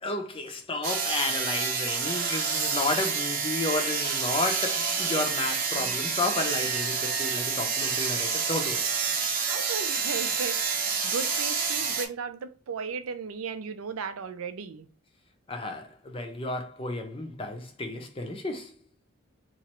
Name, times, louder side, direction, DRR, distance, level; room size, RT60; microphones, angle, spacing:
voice 1, 0.0-8.9 15.5-18.7, left 2 dB, 25° left, 0.5 m, -32 dB
sound 1, 0.8-12.0, right 5 dB, 40° right, 0.7 m, -28 dB
voice 2, 9.4-14.9, right 5 dB, 85° right, 0.5 m, -36 dB
3.0 x 2.5 x 4.3 m
head